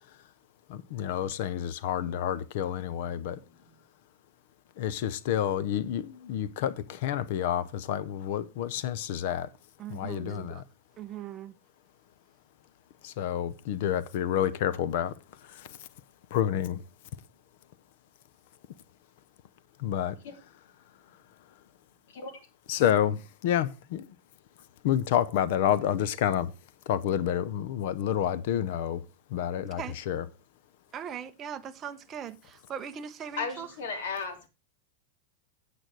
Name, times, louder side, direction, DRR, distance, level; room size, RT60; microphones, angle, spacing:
voice 1, 0.7-3.4 4.8-9.5 9.9-10.6 13.0-15.1 15.4-15.8 16.3-16.8 19.8-20.2 22.7-24.1 24.8-26.5 26.9-29.0 29.3-30.3, left 10 dB, 55° left, 0.6 m, -29 dB
voice 2, 9.8-10.6 11.0-11.5 29.6-29.9 30.9-33.7, right 8 dB, 20° right, 0.7 m, -40 dB
voice 3, 33.4-34.5, left 4 dB, 70° left, 2.8 m, -35 dB
9.1 x 7.8 x 4.6 m
supercardioid pair, 170°, 0 cm